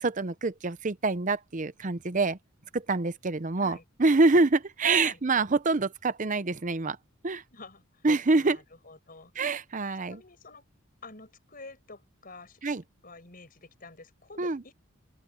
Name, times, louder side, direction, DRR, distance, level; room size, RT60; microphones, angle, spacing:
voice 1, 0.0-2.4 2.7-7.0 7.2-7.4 8.0-8.6 9.4-10.2 12.6-12.8 14.4-14.6, right 3 dB, 35° right, 0.7 m, -26 dB
voice 2, 7.5-8.1 8.3-9.3 10.0-10.7 11.0-12.6 13.0-14.7, left 3 dB, 40° left, 5.8 m, -48 dB
open air
head